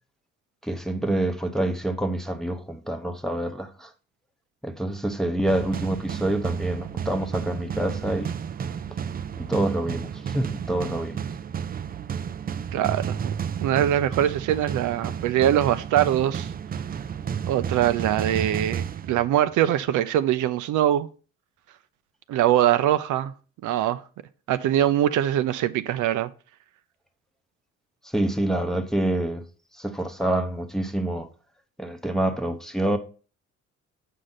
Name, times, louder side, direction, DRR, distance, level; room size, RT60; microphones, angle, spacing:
voice 1, 0.6-3.9 4.6-8.3 9.4-11.2 28.0-29.5 29.7-31.3 31.8-33.0, right 1 dB, ahead, 0.9 m, -27 dB
sound 1, 5.5-19.7, right 7 dB, 30° right, 0.4 m, -32 dB
voice 2, 12.7-13.2 13.6-16.5 17.4-21.1 22.3-23.3 23.6-24.0 24.5-26.3, right 11 dB, 80° right, 0.5 m, -22 dB
7.5 x 5.1 x 4.1 m
cardioid pair, 90°, 30 cm